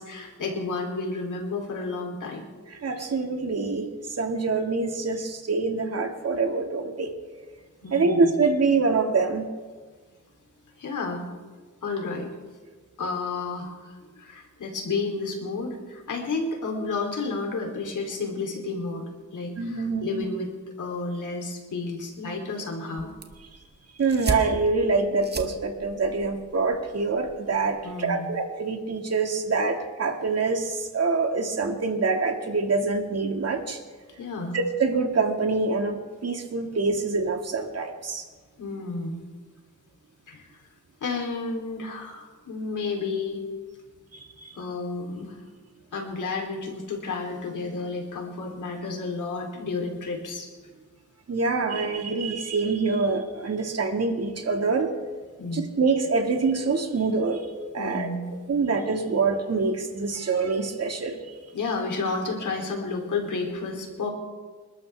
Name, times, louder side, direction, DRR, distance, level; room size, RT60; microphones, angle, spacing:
voice 1, 0.0-2.4 7.8-8.3 10.8-11.3 11.8-12.3 13.0-19.0 19.3-20.5 20.8-23.1 27.8-28.3 34.2-34.6 38.6-39.2 40.3-40.6 41.0-43.4 44.5-45.4 45.9-50.5 55.4-55.7 57.8-58.3 61.5-64.1, left 3 dB, 85° left, 1 dB, 3.3 m, -31 dB
voice 2, 2.8-7.1 7.9-9.5 19.6-20.3 24.0-33.8 34.5-38.3 44.1-44.6 51.3-54.9 55.5-57.5 57.7-58.1 58.5-61.2, right 4 dB, 55° right, 4 dB, 2.0 m, -25 dB
sound 1, 23.0-28.0, right 3 dB, 35° right, 1.6 m, -36 dB
28.5 x 12.5 x 3.5 m, 1.4 s
cardioid pair, 90°, 30 cm